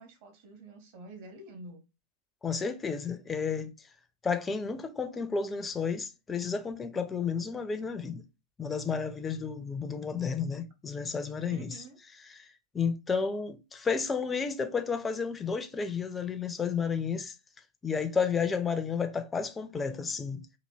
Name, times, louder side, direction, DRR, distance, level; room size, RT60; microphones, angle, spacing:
voice 1, 0.0-1.8 11.5-12.0, right 2 dB, 50° right, 1.1 m, -48 dB
voice 2, 2.4-3.7 4.2-8.2 8.6-11.7 12.7-17.3 17.8-20.5, left 5 dB, 15° left, 0.5 m, -31 dB
4.0 x 2.8 x 2.6 m
figure-of-eight pair, 90°, 0 cm